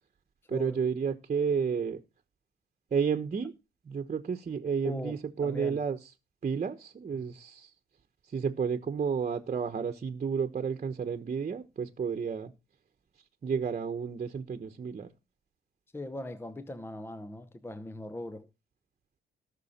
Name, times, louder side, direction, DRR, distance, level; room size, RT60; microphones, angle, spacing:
voice 1, 0.5-2.0 2.9-3.5 3.8-6.1 6.4-7.7 8.3-12.5 13.4-15.1, right 6 dB, 35° right, 1.2 m, -31 dB
voice 2, 4.8-5.8 15.9-18.5, left 1 dB, 10° left, 0.8 m, -40 dB
17.5 x 6.3 x 4.3 m
cardioid pair, 90°, 20 cm